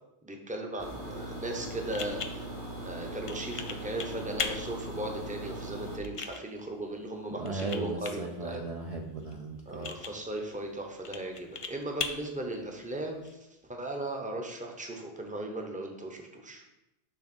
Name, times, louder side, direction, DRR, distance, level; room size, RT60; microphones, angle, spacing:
voice 1, 0.2-2.5 2.8-8.6 9.7-13.2 13.6-16.6, right 1 dB, 10° right, 2 dB, 0.7 m, -37 dB
sound 1, 0.8-6.0, right 1 dB, 80° right, 2.4 m, -40 dB
sound 2, 1.3-13.3, left 5 dB, 50° left, 0.4 m, -42 dB
voice 2, 7.4-9.9, right 3 dB, 45° right, 2 dB, 0.5 m, -36 dB
6.4 x 3.4 x 6.0 m, 0.93 s
omnidirectional pair, 1.2 m